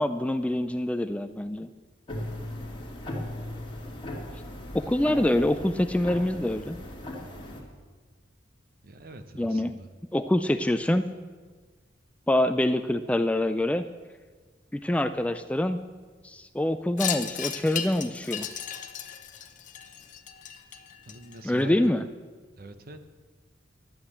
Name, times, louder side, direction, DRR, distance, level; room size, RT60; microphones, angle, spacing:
voice 1, 0.0-1.7 4.7-6.8 9.4-9.7 10.1-11.0 12.3-13.8 14.7-15.8 16.2-18.5 21.4-22.0, left 1 dB, 5° left, 10 dB, 0.3 m, -25 dB
sound 1, 2.1-7.6, left 1 dB, 30° left, 2.3 m, -38 dB
voice 2, 4.8-5.4 8.8-9.9 21.1-21.9 22.6-23.1, right 2 dB, 50° right, 9 dB, 0.9 m, -45 dB
Wind chime, 17.0-21.6, left 9 dB, 45° left, 0.8 m, -35 dB
11.5 x 8.6 x 8.0 m, 1.5 s
head